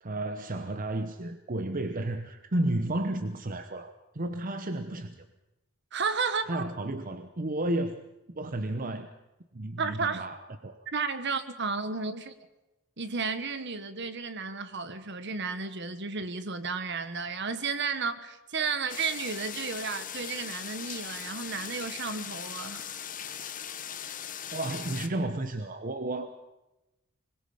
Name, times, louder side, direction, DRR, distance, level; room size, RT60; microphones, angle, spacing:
voice 1, 0.0-5.2 6.5-8.1 8.4-9.1 9.5-10.8 24.5-26.3, right 1 dB, 40° right, 1.0 m, -32 dB
voice 2, 5.9-6.7 9.8-10.3 10.9-12.3 13.0-22.8, right 5 dB, 55° right, 1.5 m, -33 dB
sound 1, 18.9-25.1, left 9 dB, 40° left, 1.1 m, -39 dB
25.0 x 21.5 x 5.1 m
head